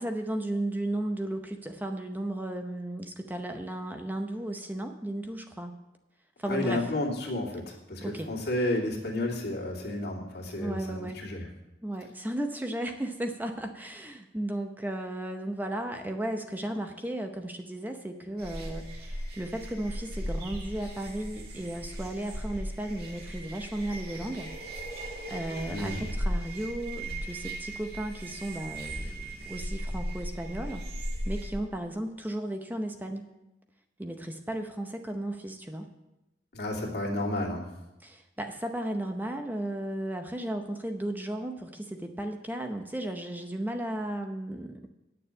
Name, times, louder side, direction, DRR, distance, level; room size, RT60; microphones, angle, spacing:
voice 1, 0.0-5.7 6.4-6.9 8.0-8.3 10.6-11.2 11.8-24.5 24.8-25.0 25.3-33.3 34.0-35.9 38.0-44.9, right 1 dB, 10° right, 5 dB, 0.7 m, -35 dB
voice 2, 6.5-11.5 25.7-26.0 36.5-37.7, left 1 dB, 65° left, -2 dB, 2.5 m, -31 dB
sound 1, 18.4-31.5, equal, 60° right, 2.2 m, -37 dB
9.0 x 6.9 x 8.6 m, 0.95 s
head